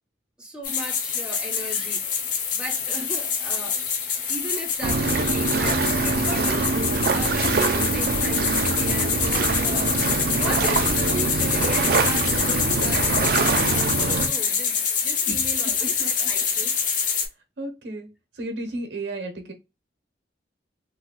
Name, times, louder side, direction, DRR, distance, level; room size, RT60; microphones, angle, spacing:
voice 1, 0.4-2.0 2.5-3.8 4.3-9.9 10.4-16.7, right 1 dB, 5° right, 0.6 m, -36 dB
sound 1, 0.6-17.3, left 6 dB, 45° left, 0.7 m, -26 dB
sound 2, 4.8-14.3, right 3 dB, 55° right, 0.4 m, -24 dB
voice 2, 15.3-16.3 16.7-17.2 17.6-18.1 18.4-19.5, right 2 dB, 85° right, 1.0 m, -34 dB
4.0 x 2.3 x 2.3 m
head